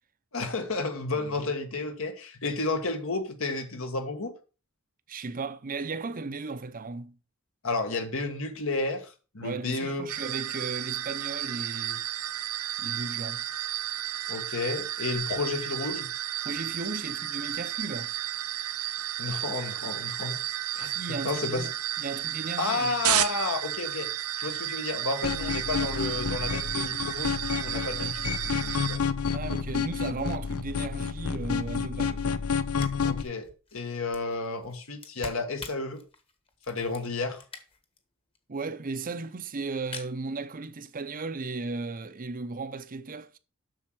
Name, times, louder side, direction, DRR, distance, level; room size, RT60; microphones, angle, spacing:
voice 1, 0.3-4.3 7.6-10.1 14.3-16.1 19.2-20.4 20.7-21.0 21.2-21.7 22.6-24.1 24.4-29.0 33.0-36.0 36.7-37.4, left 3 dB, 65° left, 1.6 m, -32 dB
voice 2, 1.1-1.5 2.4-2.5 5.1-7.2 9.4-12.0 12.8-13.4 16.4-18.1 20.8-21.7 22.0-23.0 29.3-32.4 38.5-43.4, right 3 dB, 40° right, 0.7 m, -36 dB
sound 1, 10.1-29.0, right 12 dB, 80° right, 0.7 m, -32 dB
sound 2, 25.2-33.2, left 5 dB, 85° left, 0.8 m, -30 dB
sound 3, 32.4-32.5 32.8-38.0 38.4-38.5 38.6-38.7 38.9-39.3 39.7-40.1, left 3 dB, 25° left, 1.4 m, -45 dB
7.7 x 6.4 x 6.0 m
head